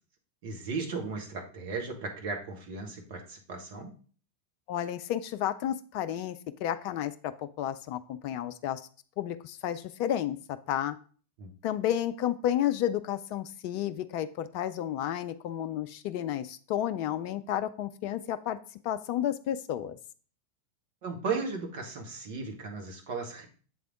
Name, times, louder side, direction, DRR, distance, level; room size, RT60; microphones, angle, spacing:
voice 1, 0.4-3.9 11.4-11.5 21.0-23.5, right 4 dB, 50° right, 2 dB, 1.3 m, -36 dB
voice 2, 4.7-8.8 9.2-10.4 10.7-11.0 11.6-18.6 18.8-20.0, left 11 dB, 45° left, 10 dB, 0.3 m, -31 dB
7.6 x 3.4 x 3.7 m, 0.41 s
figure-of-eight pair, 90°, 0 cm